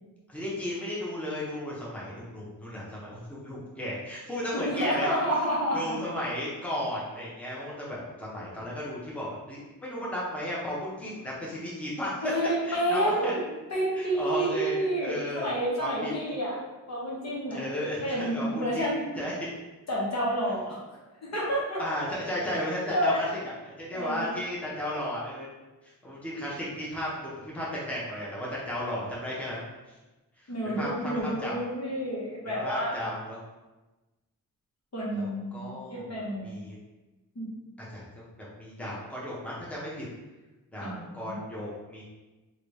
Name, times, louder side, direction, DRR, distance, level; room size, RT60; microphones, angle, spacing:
voice 1, 0.3-5.2 5.7-12.1 12.6-13.3 13.9-15.5 15.8-16.1 17.5-18.9 19.2-19.5 21.8-23.3 23.6-25.5 25.8-29.6 30.4-31.5 32.5-33.4 35.1-36.2 36.4-36.8 37.9-40.0 40.7-42.0, left 1 dB, 5° left, -6 dB, 1.1 m, -34 dB
voice 2, 4.5-6.0 12.2-13.4 13.7-16.6 16.9-17.6 18.0-19.0 19.9-20.8 21.2-21.8 22.9-23.2 23.9-24.3 30.5-33.2 34.9-36.6 37.3-37.5 40.8-41.4, right 1 dB, 50° left, -6 dB, 1.3 m, -29 dB
3.1 x 2.6 x 3.2 m, 1.1 s
cardioid pair, 55°, 34 cm